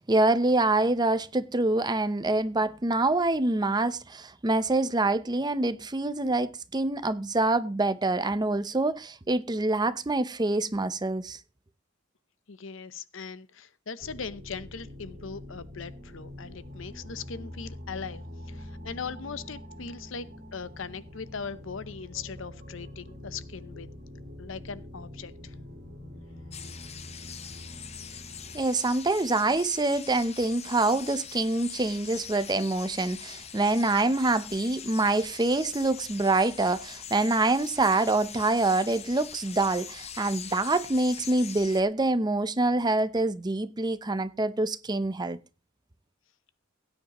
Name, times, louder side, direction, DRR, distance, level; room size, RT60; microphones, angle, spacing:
voice 1, 0.0-11.4 28.5-45.4, right 2 dB, 20° right, 0.7 m, -26 dB
voice 2, 12.5-23.9 24.4-25.5, left 5 dB, 70° left, 0.8 m, -40 dB
sound 1, 14.0-28.6, left 1 dB, 45° right, 4.0 m, -44 dB
sound 2, 26.5-41.8, left 8 dB, 30° left, 0.8 m, -43 dB
17.0 x 9.5 x 3.0 m
head